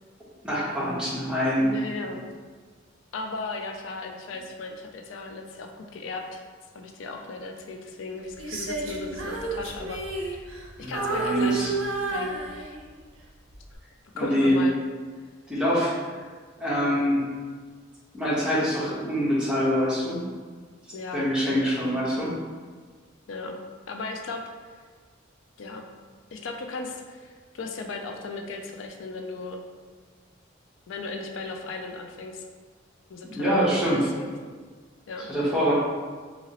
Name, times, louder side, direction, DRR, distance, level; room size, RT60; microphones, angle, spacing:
voice 1, 0.4-1.7 10.8-11.7 14.1-14.6 15.5-15.9 16.6-17.2 18.1-20.2 21.1-22.3 33.2-34.0 35.3-35.7, equal, 5° right, -9 dB, 0.9 m, -25 dB
voice 2, 1.6-2.3 3.1-6.4 6.7-11.8 12.1-12.7 14.2-14.8 20.9-21.3 21.9-22.3 23.3-23.6 23.9-24.4 25.6-25.9 26.3-29.6 30.9-32.4 33.1-34.3 35.1-35.3, left 3 dB, 65° left, 3 dB, 0.3 m, -36 dB
Female singing, 8.4-10.7 10.9-13.0 13.5-13.8, right 3 dB, 70° right, 0.6 m, -31 dB
2.9 x 2.8 x 2.8 m, 1.5 s
head